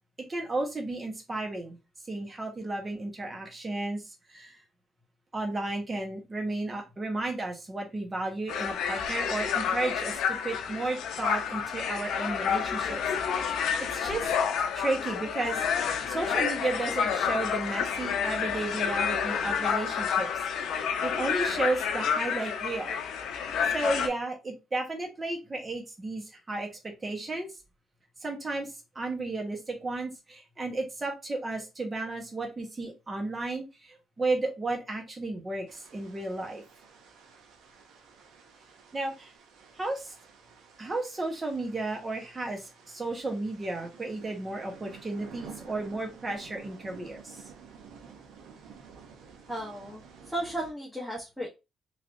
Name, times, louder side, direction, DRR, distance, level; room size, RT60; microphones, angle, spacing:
voice 1, 0.3-1.8 2.1-4.6 5.3-14.3 14.7-15.6 16.1-20.3 20.7-22.9 23.7-27.5 28.2-36.6 38.9-39.3 39.8-40.1 40.8-47.4, right 2 dB, 25° right, 2 dB, 1.2 m, -33 dB
sound 1, 8.5-24.1, left 7 dB, 80° left, 0.5 m, -29 dB
sound 2, 35.7-50.7, right 6 dB, 85° right, 0.7 m, -51 dB
voice 2, 49.5-51.5, right 1 dB, ahead, -5 dB, 1.0 m, -35 dB
3.3 x 2.9 x 2.6 m, 0.26 s
cardioid pair, 90°, 0 cm